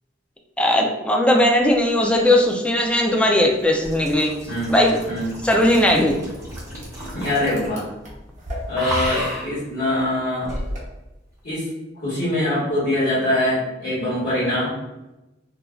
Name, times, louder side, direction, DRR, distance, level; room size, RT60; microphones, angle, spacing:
voice 1, 0.6-4.4 4.7-5.0 5.4-6.2, left 1 dB, 5° left, 1 dB, 0.3 m, -18 dB
sound 1, 2.1-8.4 8.7-9.6 10.5-10.6, equal, 15° right, 1.1 m, -33 dB
sound 2, 5.5-10.8, equal, 40° right, 0.7 m, -36 dB
voice 2, 7.1-7.8 8.7-10.5 11.4-11.7 12.0-14.7, left 1 dB, 60° left, -14 dB, 1.5 m, -23 dB
3.1 x 2.4 x 2.2 m, 1.0 s
head